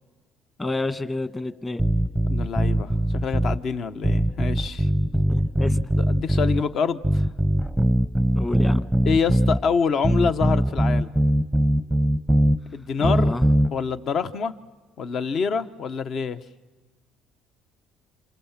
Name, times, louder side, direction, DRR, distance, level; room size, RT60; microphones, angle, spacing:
voice 1, 0.6-1.8 5.3-5.8 8.3-8.9 13.0-13.5, left 2 dB, 20° left, 11 dB, 1.5 m, -29 dB
sound 1, 1.8-3.6 4.0-6.6 7.0-9.6 10.0-12.6 13.0-13.7, right 1 dB, ahead, 0.8 m, -21 dB
voice 2, 2.3-4.9 5.6-7.3 9.0-11.1 12.7-13.4 13.7-14.5 15.0-16.4, left 5 dB, 55° left, 11 dB, 1.0 m, -26 dB
28.0 x 28.0 x 7.4 m, 1.3 s
supercardioid pair, 85°, 0 cm